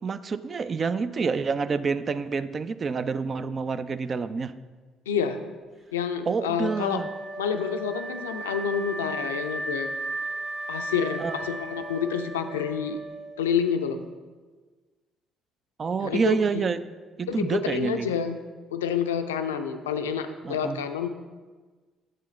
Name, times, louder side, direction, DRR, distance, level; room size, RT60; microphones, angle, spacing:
voice 1, 0.0-4.5 6.3-7.1 11.2-11.3 15.8-16.8 17.2-18.1 20.4-20.8, right 5 dB, 40° right, 13 dB, 0.4 m, -28 dB
voice 2, 5.1-5.4 5.9-7.0 7.4-9.9 10.7-13.0 13.4-14.0 16.0-16.7 17.3-18.4 18.7-21.1, left 7 dB, 85° left, 7 dB, 0.4 m, -28 dB
Wind instrument woodwind instrument, 6.6-13.6, right 2 dB, 60° right, 2.0 m, -35 dB
9.3 x 7.5 x 3.1 m, 1.4 s
hypercardioid pair, 50°, 0 cm